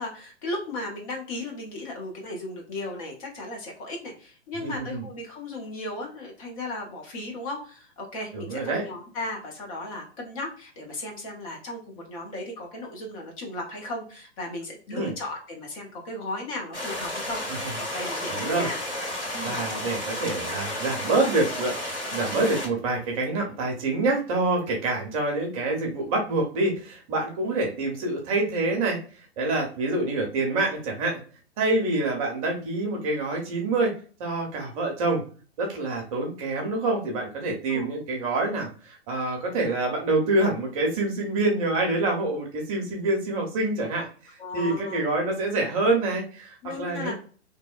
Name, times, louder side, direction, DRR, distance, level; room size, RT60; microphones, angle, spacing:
voice 1, 0.0-17.4 17.8-18.8 19.3-19.6 37.7-38.0 44.4-45.0 46.6-47.1, left 2 dB, 30° left, 0 dB, 0.7 m, -36 dB
voice 2, 4.6-5.0 8.3-8.8 14.9-15.1 18.3-18.7 19.4-29.0 29.4-31.2 31.6-33.9 34.2-35.2 35.6-44.1 44.5-47.1, right 2 dB, 30° right, 0 dB, 0.7 m, -26 dB
sound 1, 16.7-22.7, left 1 dB, 85° left, 1.3 m, -32 dB
2.7 x 2.1 x 2.3 m, 0.40 s
figure-of-eight pair, 120°, 33 cm